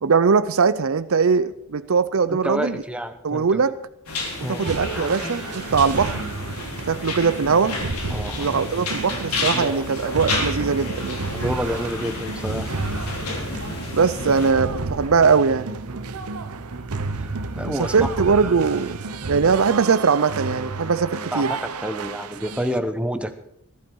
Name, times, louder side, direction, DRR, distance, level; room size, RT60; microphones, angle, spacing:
voice 1, 0.0-2.8 3.2-3.7 4.5-6.2 6.9-7.8 8.4-11.2 13.9-15.7 17.7-19.0 19.3-21.5, right 5 dB, 65° right, 14 dB, 0.5 m, -20 dB
voice 2, 2.3-3.7 4.4-4.7 8.1-8.6 9.4-9.9 11.4-13.0 16.4-16.6 17.2-17.3 17.5-17.9 21.3-23.4, equal, 5° right, 8 dB, 0.9 m, -29 dB
sound 1, 4.1-14.5, left 2 dB, 90° left, 3.8 m, -31 dB
sound 2, 4.6-22.8, right 3 dB, 85° right, 0.9 m, -31 dB
19.5 x 12.0 x 4.7 m, 0.78 s
head